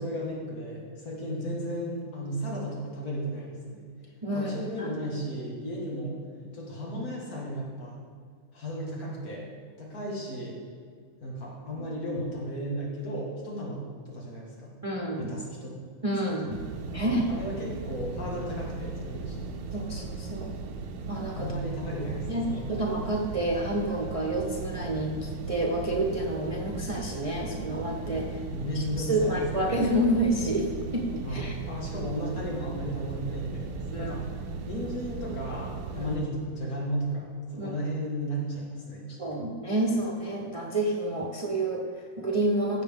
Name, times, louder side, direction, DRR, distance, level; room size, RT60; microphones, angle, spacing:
voice 1, 0.0-3.8 4.3-6.2 6.5-8.0 8.5-9.5 9.8-10.6 11.2-14.7 15.2-15.8 16.9-19.6 21.3-22.7 28.5-29.8 31.2-34.2 34.7-39.2, equal, 85° left, -4 dB, 2.5 m, -34 dB
voice 2, 4.2-4.5 4.8-4.9 13.5-13.6 14.8-15.3 16.0-16.6 16.9-17.3 19.7-20.5 21.1-21.5 22.3-28.4 28.7-31.5 33.9-34.1 35.9-36.1 37.6-37.7 39.2-42.8, right 1 dB, 30° right, -2 dB, 0.8 m, -29 dB
sound 1, 16.5-36.2, right 4 dB, 85° right, 1.2 m, -37 dB
15.0 x 6.9 x 3.6 m, 2.1 s
omnidirectional pair, 1.5 m